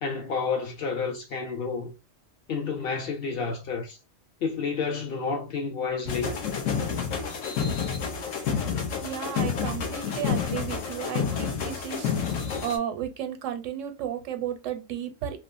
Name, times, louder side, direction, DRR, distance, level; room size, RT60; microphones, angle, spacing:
voice 1, 0.0-1.9 2.5-4.0 4.4-6.3, left 5 dB, 60° left, 0.7 m, -30 dB
sound 1, 6.1-12.8, left 6 dB, 80° left, 1.1 m, -29 dB
voice 2, 9.0-15.4, right 9 dB, 80° right, 0.9 m, -33 dB
3.0 x 2.0 x 2.4 m
omnidirectional pair, 1.3 m